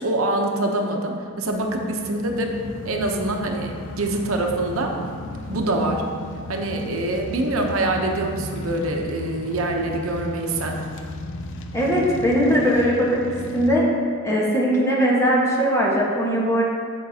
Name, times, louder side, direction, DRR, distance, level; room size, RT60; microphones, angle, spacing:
voice 1, 0.0-4.9 5.5-6.0 6.5-10.8, right 2 dB, 75° right, 2 dB, 0.8 m, -25 dB
sound 1, 1.4-13.7, left 2 dB, 65° left, 0.5 m, -35 dB
voice 2, 11.7-13.2 13.5-13.8 14.2-16.6, equal, 15° left, -4 dB, 1.3 m, -20 dB
8.8 x 7.4 x 2.8 m, 2.2 s
head